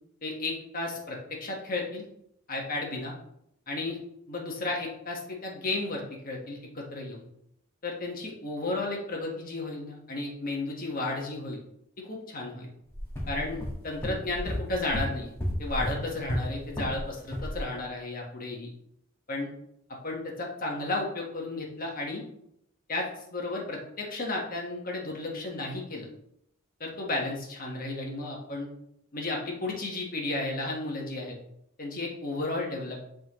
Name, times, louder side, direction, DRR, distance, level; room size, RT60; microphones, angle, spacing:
voice 1, 0.2-2.0 2.5-3.1 3.7-4.0 4.3-7.2 7.8-11.6 12.0-12.7 13.3-15.3 15.6-18.7 19.3-19.5 20.0-22.2 22.9-26.1 26.8-28.7 29.1-31.3 31.8-33.1, left 2 dB, 40° left, -1 dB, 1.4 m, -33 dB
sound 1, 12.9-17.0 17.3-17.6, equal, 10° left, 1.6 m, -33 dB
10.5 x 3.8 x 3.1 m, 0.78 s
head